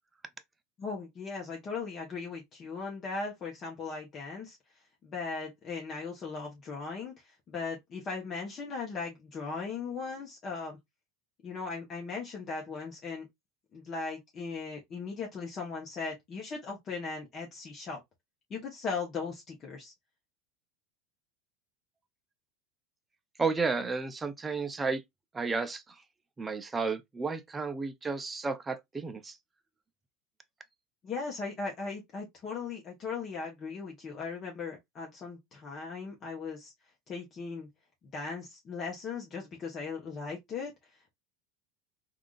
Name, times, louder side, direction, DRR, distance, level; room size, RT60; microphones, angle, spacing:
voice 1, 0.8-4.6 5.0-10.8 11.4-13.3 13.7-18.0 18.5-19.9 31.0-36.7 37.1-37.7 38.1-40.7, left 4 dB, 30° left, 1.0 m, -38 dB
voice 2, 23.4-25.0 25.3-26.0 26.4-29.4, right 4 dB, 15° right, 0.5 m, -32 dB
3.5 x 2.5 x 2.4 m
supercardioid pair, 125°, 0 cm